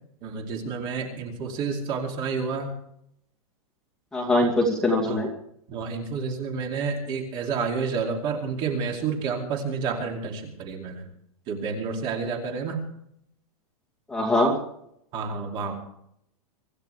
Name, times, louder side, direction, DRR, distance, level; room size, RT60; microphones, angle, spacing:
voice 1, 0.2-2.7 5.0-5.2 5.7-11.1 11.5-12.8 15.1-15.8, right 5 dB, 25° right, 2 dB, 2.6 m, -30 dB
voice 2, 4.1-5.3 14.1-14.5, left 1 dB, 5° left, -2 dB, 2.5 m, -22 dB
25.0 x 14.5 x 3.4 m, 0.72 s
supercardioid pair, 175°, 19 cm